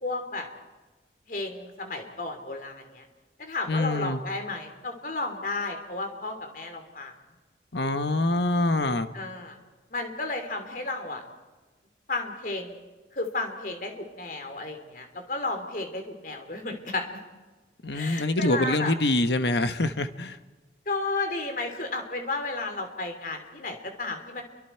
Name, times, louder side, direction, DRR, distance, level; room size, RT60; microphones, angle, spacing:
voice 1, 0.0-0.5 1.3-3.0 3.4-7.1 9.1-9.6 9.9-11.2 12.1-12.8 13.1-17.0 17.9-18.9 20.9-24.4, left 3 dB, 50° left, 5 dB, 3.2 m, -33 dB
voice 2, 3.7-4.2 7.7-9.1 17.8-20.4, left 2 dB, 70° left, 10 dB, 1.2 m, -25 dB
30.0 x 24.0 x 4.6 m, 1.2 s
head